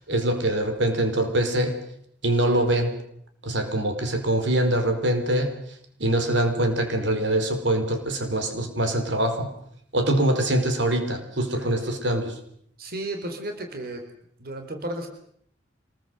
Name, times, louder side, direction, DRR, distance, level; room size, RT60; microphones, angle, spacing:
voice 1, 0.0-1.8 2.2-2.9 3.4-5.6 6.0-9.5 9.9-12.4, right 1 dB, 80° right, 6 dB, 4.8 m, -24 dB
voice 2, 12.8-14.0 14.4-15.1, right 1 dB, 55° right, 4 dB, 4.1 m, -33 dB
26.5 x 20.5 x 8.0 m, 0.68 s
head